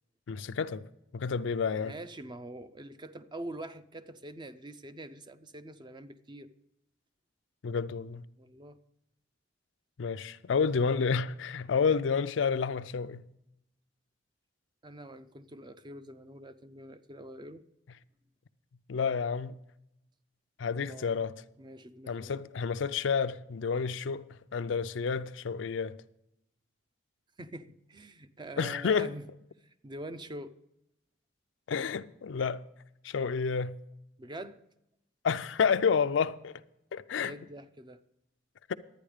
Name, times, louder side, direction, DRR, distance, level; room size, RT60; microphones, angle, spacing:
voice 1, 0.3-0.9 1.1-1.9 7.6-8.2 10.0-13.2 18.9-19.6 20.6-21.4 22.1-26.0 28.6-29.2 31.7-32.6 33.0-33.8 35.2-36.6 36.9-37.4 38.7-38.8, left 5 dB, 85° left, 0.5 m, -30 dB
voice 2, 1.8-6.5 8.4-8.8 14.8-17.6 20.7-21.1 21.6-22.4 27.4-29.2 29.6-30.6 34.2-34.6 37.1-38.0, right 1 dB, 25° right, 0.5 m, -45 dB
11.5 x 9.2 x 5.0 m
head